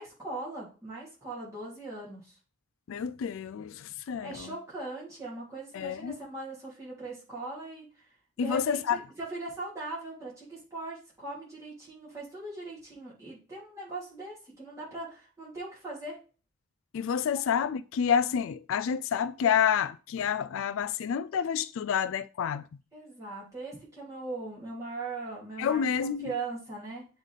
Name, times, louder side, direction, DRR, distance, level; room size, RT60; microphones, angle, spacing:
voice 1, 0.0-2.4 4.2-16.2 22.9-27.1, right 2 dB, 15° right, 3.1 m, -40 dB
voice 2, 2.9-4.5 5.7-6.1 8.4-9.0 16.9-22.7 25.6-26.3, left 7 dB, 65° left, 0.3 m, -29 dB
8.0 x 3.9 x 3.5 m
head